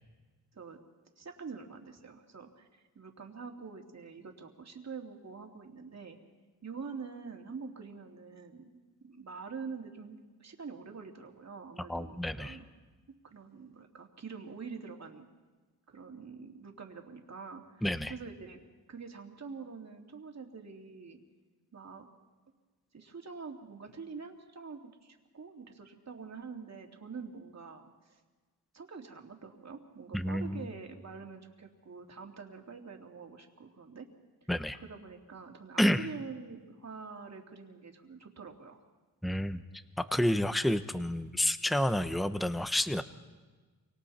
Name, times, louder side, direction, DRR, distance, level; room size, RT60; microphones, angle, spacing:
voice 1, 1.2-6.2 6.6-8.8 9.1-12.7 13.2-15.2 15.9-18.6 18.9-21.2 21.7-22.0 22.9-28.2 28.7-34.1 34.4-34.5 34.8-38.8, right 5 dB, 45° right, 3 dB, 2.7 m, -46 dB
voice 2, 11.9-12.6 17.8-18.1 30.1-30.6 34.5-34.8 35.8-36.1 39.2-39.6 40.0-43.0, left 1 dB, ahead, 11 dB, 0.9 m, -29 dB
28.5 x 24.5 x 4.3 m, 1.3 s
cardioid pair, 90°, 38 cm